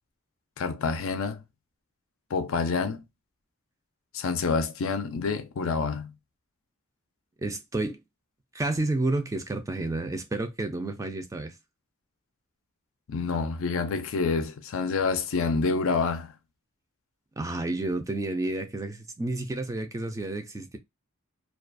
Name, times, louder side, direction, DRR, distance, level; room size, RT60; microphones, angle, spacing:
voice 1, 0.6-1.4 2.3-3.0 4.1-6.1 13.1-16.3, left 4 dB, 70° left, 0.4 m, -27 dB
voice 2, 7.4-8.0 8.5-11.5 17.4-20.8, right 2 dB, 15° right, 0.3 m, -30 dB
2.3 x 2.3 x 2.4 m
head